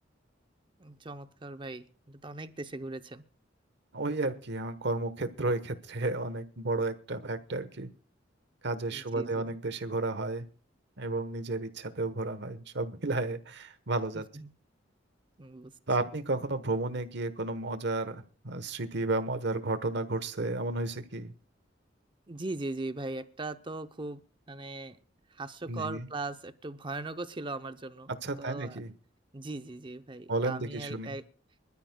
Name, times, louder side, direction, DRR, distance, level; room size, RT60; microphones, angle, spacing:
voice 1, 0.8-3.2 8.9-9.4 14.3-14.5 15.4-15.8 22.3-25.0 25.3-28.1 28.4-28.8 29.3-31.3, right 2 dB, 25° right, 10 dB, 0.7 m, -39 dB
voice 2, 3.9-7.9 8.6-10.5 11.0-14.2 15.9-21.3 25.7-26.0 28.2-28.9 30.3-31.1, right 2 dB, 65° right, 12 dB, 1.2 m, -32 dB
25.0 x 13.0 x 2.3 m, 0.38 s
head